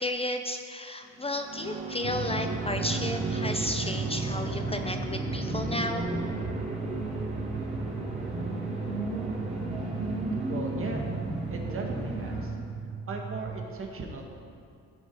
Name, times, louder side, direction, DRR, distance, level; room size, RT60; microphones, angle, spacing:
voice 1, 0.0-6.1, left 1 dB, 20° left, 6 dB, 0.5 m, -33 dB
sound 1, 1.0-9.7, right 3 dB, 85° right, 1.7 m, -41 dB
sound 2, 2.0-12.4, right 1 dB, 20° right, 3.1 m, -34 dB
sound 3, 2.0-13.7, right 6 dB, 70° right, 0.7 m, -37 dB
voice 2, 10.4-11.1 11.5-12.6 13.1-14.2, right 3 dB, 45° right, 1 dB, 1.8 m, -37 dB
14.5 x 6.5 x 4.8 m, 2.4 s
cardioid pair, 90°, 30 cm